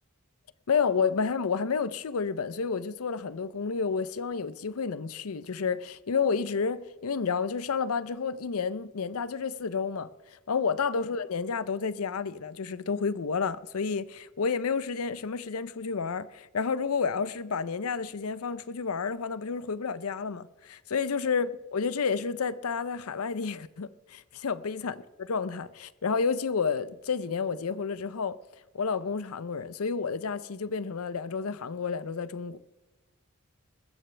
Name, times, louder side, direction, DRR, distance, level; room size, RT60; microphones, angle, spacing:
voice 1, 0.7-28.4 28.7-32.6, left 5 dB, 85° left, 0.6 m, -30 dB
22.0 x 13.5 x 3.3 m
head